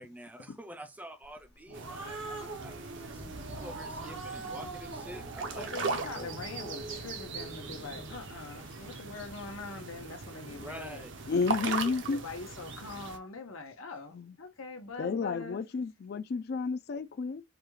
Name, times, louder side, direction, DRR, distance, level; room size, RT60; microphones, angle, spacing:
voice 1, 0.0-3.2 3.5-6.3 10.6-11.1, right 1 dB, 10° right, 0.5 m, -47 dB
Growling, 1.4-8.2, right 2 dB, 85° right, 1.7 m, -44 dB
sound 1, 1.7-13.2, right 4 dB, 65° right, 0.7 m, -39 dB
sound 2, 3.2-9.3, equal, 65° left, 1.4 m, -51 dB
voice 2, 5.5-11.1 12.0-15.6, left 4 dB, 90° left, 0.9 m, -43 dB
voice 3, 11.3-12.2 14.1-14.3 15.0-17.4, left 4 dB, 50° left, 0.3 m, -32 dB
4.8 x 2.3 x 3.1 m
head